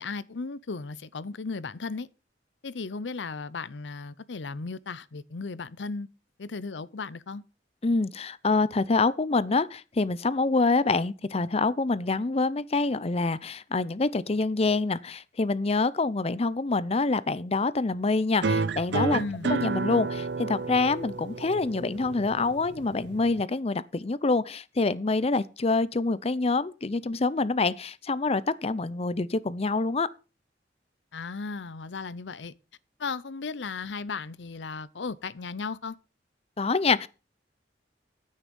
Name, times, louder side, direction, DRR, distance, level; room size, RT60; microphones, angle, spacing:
voice 1, 0.0-2.1 2.6-6.1 6.4-7.4 19.1-19.5 31.1-32.5 33.0-36.0, left 4 dB, 85° left, 0.7 m, -35 dB
voice 2, 7.8-30.1 36.6-37.1, left 3 dB, 35° left, 0.6 m, -26 dB
sound 1, 18.4-23.4, right 4 dB, 75° right, 0.6 m, -31 dB
9.9 x 8.9 x 5.3 m
head